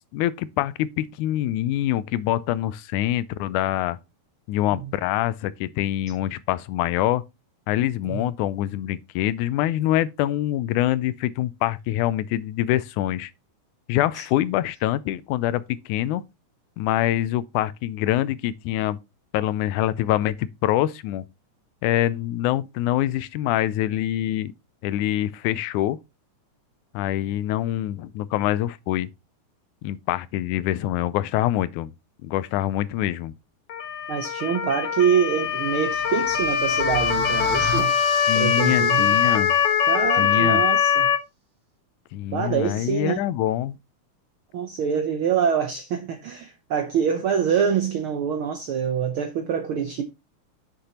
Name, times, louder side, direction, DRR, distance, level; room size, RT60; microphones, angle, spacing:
voice 1, 0.1-4.0 4.5-7.2 7.7-13.3 13.9-16.2 16.8-19.0 19.3-21.2 21.8-24.5 24.8-26.0 26.9-29.1 29.8-31.9 32.2-33.3 38.3-39.6 40.1-40.6 42.1-43.8, left 13 dB, 85° left, 2.0 m, -25 dB
Motor vehicle (road) / Siren, 33.7-41.2, left 8 dB, 60° left, 1.8 m, -22 dB
voice 2, 34.1-37.9 38.3-39.2 39.9-41.1 42.3-43.2 44.5-50.0, right 7 dB, 80° right, 1.2 m, -25 dB
sound 1, 35.2-40.3, equal, 30° right, 2.5 m, -35 dB
7.8 x 6.5 x 2.8 m
omnidirectional pair, 3.4 m